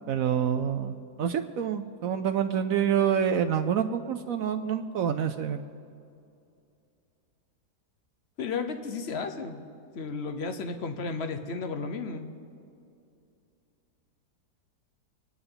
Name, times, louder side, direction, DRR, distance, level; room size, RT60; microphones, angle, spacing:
voice 1, 0.1-5.6, right 8 dB, 65° right, 7 dB, 0.9 m, -27 dB
voice 2, 8.4-9.7 9.9-12.3, left 4 dB, 45° left, 7 dB, 1.0 m, -33 dB
26.5 x 9.6 x 4.0 m, 2.5 s
omnidirectional pair, 1.8 m